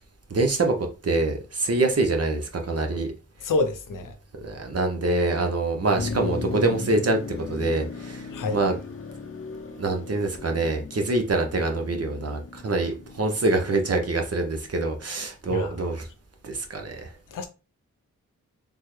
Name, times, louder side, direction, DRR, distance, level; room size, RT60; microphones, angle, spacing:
voice 1, 0.3-3.1 4.4-8.8 9.8-16.1 16.4-17.1, right 2 dB, 50° right, 1.0 m, -25 dB
voice 2, 3.4-4.1 8.3-8.6 15.5-15.8 17.3-17.5, left 3 dB, 80° left, 0.6 m, -27 dB
Motor vehicle (road), 5.9-14.9, left 4 dB, 45° left, 0.7 m, -37 dB
3.5 x 2.3 x 3.1 m
cardioid pair, 40°, 31 cm